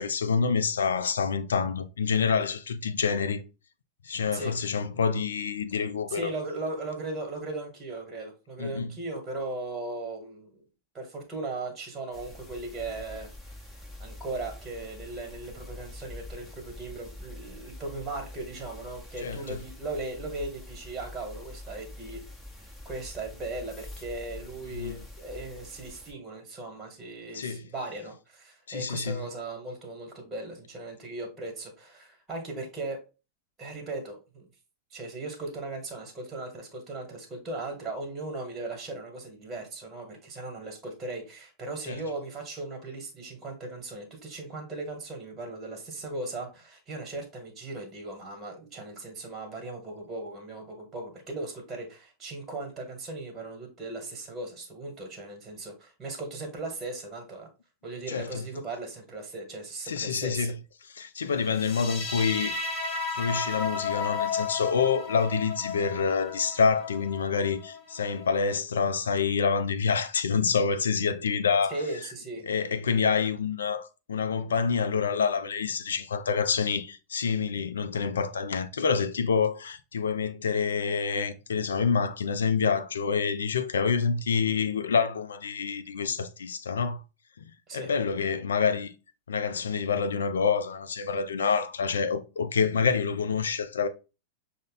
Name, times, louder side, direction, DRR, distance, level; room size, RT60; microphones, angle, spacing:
voice 1, 0.0-3.4 4.0-6.3 8.6-8.9 19.2-19.6 24.7-25.0 27.3-27.7 28.7-29.2 41.8-42.0 58.1-58.5 59.9-60.5 60.8-62.6 62.8-71.8 72.5-87.0 87.4-87.5 87.7-88.9 89.3-93.9, left 5 dB, 70° left, 0.4 m, -27 dB
voice 2, 6.1-10.6 10.9-13.3 13.7-22.2 22.6-33.0 33.6-34.4 34.9-57.5 57.8-60.5 71.7-72.5 87.7-87.9, right 2 dB, 20° right, 1.4 m, -38 dB
sound 1, 12.1-26.1, left 1 dB, 10° left, 1.0 m, -45 dB
sound 2, 61.5-68.5, left 5 dB, 30° left, 1.4 m, -34 dB
6.2 x 2.1 x 3.9 m
figure-of-eight pair, 90°, 0 cm